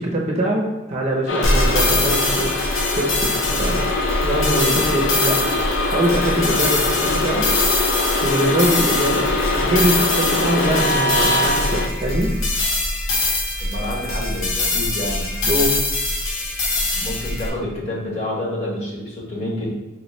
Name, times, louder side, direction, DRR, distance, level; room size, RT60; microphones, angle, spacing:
voice 1, 0.0-3.8 4.2-5.4 5.9-7.5 8.2-9.3 9.5-12.3 15.4-15.7, right 1 dB, 35° right, -2 dB, 0.7 m, -23 dB
sound 1, 1.3-11.9, left 2 dB, 65° left, 0.5 m, -23 dB
sound 2, 1.4-17.5, left 2 dB, 85° left, 0.9 m, -23 dB
voice 2, 13.6-15.3 16.9-19.7, left 1 dB, 35° left, -5 dB, 1.3 m, -28 dB
4.6 x 3.1 x 3.1 m, 1.2 s
head